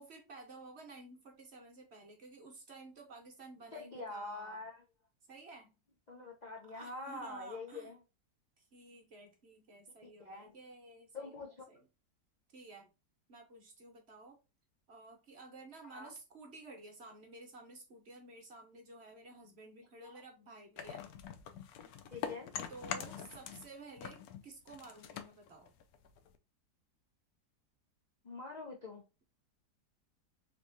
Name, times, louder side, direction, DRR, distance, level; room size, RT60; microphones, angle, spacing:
voice 1, 0.0-4.6 5.3-5.8 6.4-7.9 8.6-11.9 12.5-12.9 13.3-14.4 14.9-21.1 22.7-25.7, right 3 dB, 45° right, 1.0 m, -53 dB
voice 2, 3.7-4.8 6.1-8.0 10.2-10.5 11.1-11.5 15.8-16.1 20.0-20.2 22.1-22.5 28.2-29.0, left 3 dB, 50° left, 0.5 m, -45 dB
sound 1, 20.8-23.7 24.0-26.4, left 8 dB, 75° left, 1.0 m, -44 dB
3.5 x 3.1 x 2.6 m
omnidirectional pair, 1.7 m